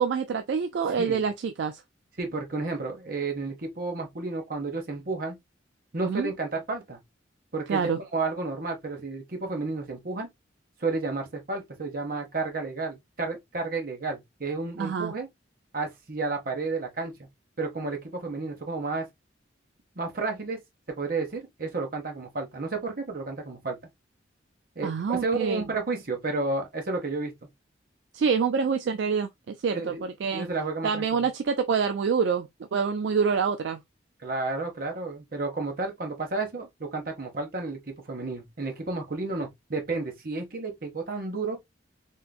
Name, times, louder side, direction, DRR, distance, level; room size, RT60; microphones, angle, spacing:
voice 1, 0.0-1.8 6.0-6.3 7.7-8.0 14.8-15.1 24.8-25.6 28.1-30.5 30.8-33.8, right 6 dB, 70° right, 0.3 m, -26 dB
voice 2, 2.2-5.3 5.9-7.0 7.5-10.3 10.8-15.3 15.7-17.3 17.6-19.1 20.0-20.6 20.9-23.8 24.8-27.3 29.7-30.0 30.3-31.3 34.2-41.6, right 3 dB, 50° right, 0.9 m, -31 dB
3.7 x 2.5 x 2.3 m
head